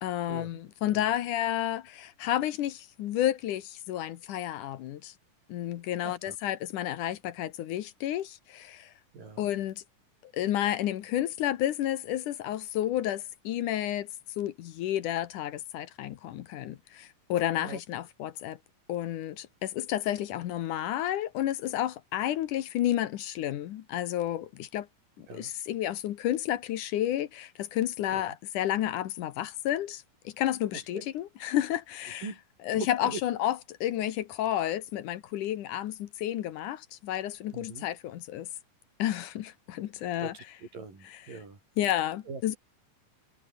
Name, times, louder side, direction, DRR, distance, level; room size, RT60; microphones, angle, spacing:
voice 1, 0.0-5.1 5.5-8.9 9.4-9.8 10.2-14.1 14.4-18.6 18.9-24.9 25.2-32.3 32.6-38.5 39.0-40.3 41.8-42.6, left 12 dB, 70° left, 2.5 m, -31 dB
voice 2, 6.0-6.4 9.1-9.5 17.6-17.8 25.3-25.5 28.1-28.4 30.9-31.1 32.2-32.4 32.7-33.2 37.5-37.9 40.2-40.4 40.7-41.6 42.3-42.4, right 4 dB, 75° right, 8.2 m, -41 dB
omnidirectional pair, 3.9 m